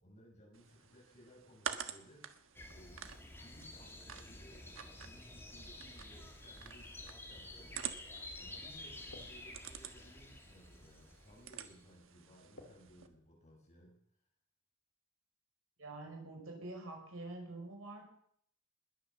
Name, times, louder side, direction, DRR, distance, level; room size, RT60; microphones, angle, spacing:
voice 1, 0.0-14.0, equal, 35° left, -2 dB, 7.6 m, -61 dB
sound 1, 0.5-13.1, right 8 dB, 70° right, 1.4 m, -49 dB
sound 2, 2.5-12.0, left 1 dB, 10° left, 2.5 m, -51 dB
sound 3, 9.1-13.3, left 1 dB, 65° left, 3.0 m, -63 dB
voice 2, 15.8-18.1, right 2 dB, 85° right, 1 dB, 5.7 m, -46 dB
20.5 x 9.5 x 7.3 m, 0.67 s
head